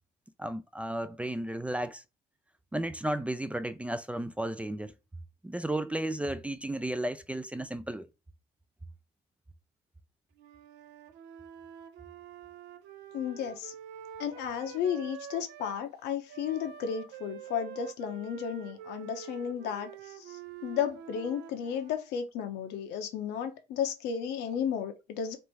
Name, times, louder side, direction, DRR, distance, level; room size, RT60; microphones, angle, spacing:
voice 1, 0.4-2.0 2.7-4.9 5.4-8.1, right 1 dB, 10° right, 0.3 m, -33 dB
Wind instrument woodwind instrument, 10.4-15.8 16.3-22.2, right 9 dB, 80° right, 0.6 m, -47 dB
voice 2, 13.1-13.7 14.2-25.4, left 8 dB, 85° left, 0.9 m, -33 dB
3.3 x 2.6 x 4.5 m
cardioid pair, 110°, 17 cm